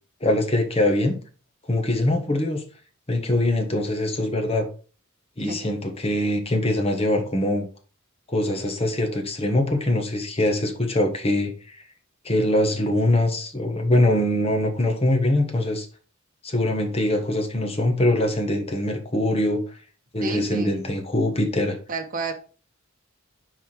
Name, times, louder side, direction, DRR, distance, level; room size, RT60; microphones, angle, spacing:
voice 1, 0.2-1.2 1.7-2.6 3.1-4.7 5.4-7.7 8.3-11.8 12.2-15.9 16.4-19.6 20.1-21.8, left 1 dB, 30° left, 3 dB, 1.3 m, -23 dB
voice 2, 20.2-20.7 21.9-22.3, right 3 dB, 40° right, 4 dB, 1.1 m, -30 dB
5.7 x 4.8 x 4.5 m, 0.36 s
head